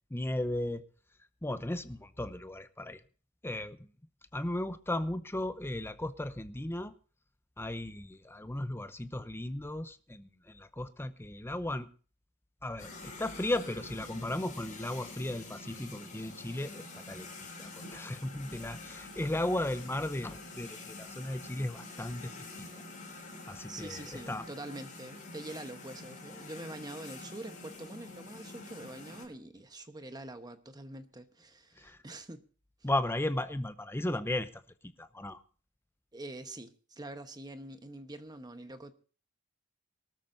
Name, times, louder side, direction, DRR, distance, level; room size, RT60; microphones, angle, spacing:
voice 1, 0.1-0.8 1.4-3.0 3.4-3.8 4.3-6.9 7.6-11.9 12.6-22.3 22.6-22.7 23.5-24.4 31.8-32.0 32.8-34.5 34.8-35.4, left 1 dB, 10° left, 0.7 m, -35 dB
sound 1, 12.8-29.2, left 2 dB, 40° left, 7.1 m, -47 dB
voice 2, 23.7-32.4 36.1-38.9, right 2 dB, 20° right, 1.1 m, -45 dB
24.0 x 13.0 x 2.6 m
head